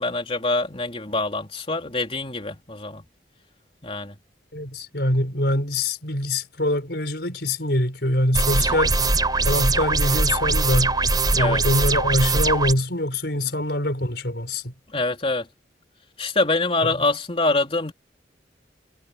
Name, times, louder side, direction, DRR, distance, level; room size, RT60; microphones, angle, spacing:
voice 1, 0.0-3.1 3.8-4.2 8.6-8.8 11.3-11.6 13.5-13.6 14.9-15.5 16.2-17.9, left 2 dB, 30° left, 3.5 m, -25 dB
voice 2, 4.5-9.1 9.4-11.0 11.3-14.7, left 1 dB, 65° left, 5.6 m, -24 dB
sound 1, 8.3-12.7, right 3 dB, 25° right, 3.7 m, -21 dB
head